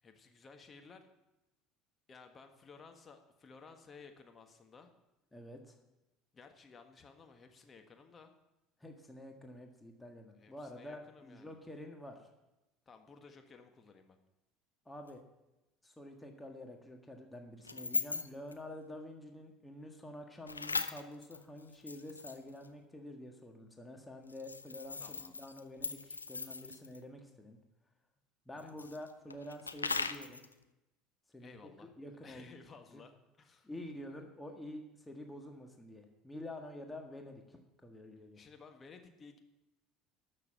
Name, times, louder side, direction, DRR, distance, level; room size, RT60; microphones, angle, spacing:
voice 1, 0.0-1.1 2.1-4.9 6.3-8.3 10.3-11.6 12.8-14.2 25.0-25.4 28.5-28.7 31.4-31.9 32.2-33.7 38.3-39.4, left 4 dB, 30° left, 5 dB, 1.5 m, -56 dB
voice 2, 5.3-5.8 8.8-12.2 14.8-15.2 15.8-27.6 28.4-30.4 31.3-31.6 32.0-32.6 32.9-33.0 33.6-38.4, left 1 dB, 10° left, 3 dB, 1.6 m, -48 dB
sound 1, 15.1-15.2 17.6-18.5 20.5-22.7 24.3-27.0 28.6-30.5, left 4 dB, 85° left, 0.4 m, -39 dB
12.0 x 6.7 x 7.5 m, 0.96 s
figure-of-eight pair, 65°, 0 cm